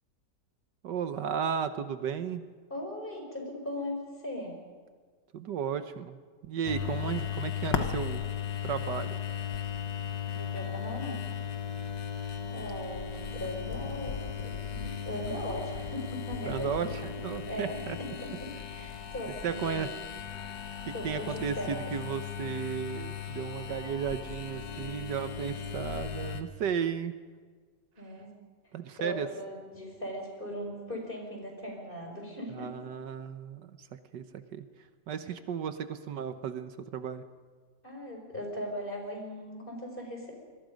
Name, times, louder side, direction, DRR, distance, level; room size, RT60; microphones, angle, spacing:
voice 1, 0.8-2.4 5.3-6.2 6.4-8.2 8.6-9.2 16.4-18.0 19.4-19.9 20.8-27.1 28.7-29.3 32.5-34.6 35.1-37.2, right 7 dB, 80° right, 10 dB, 1.6 m, -34 dB
voice 2, 2.7-4.5 10.3-11.2 12.5-16.9 17.5-19.9 20.9-21.9 28.0-28.3 29.0-32.7 35.2-35.3 37.8-40.3, equal, 30° left, 1 dB, 5.1 m, -39 dB
sound 1, 6.7-26.4, left 8 dB, 85° left, 2.0 m, -36 dB
27.0 x 22.0 x 5.3 m, 1.5 s
omnidirectional pair, 1.9 m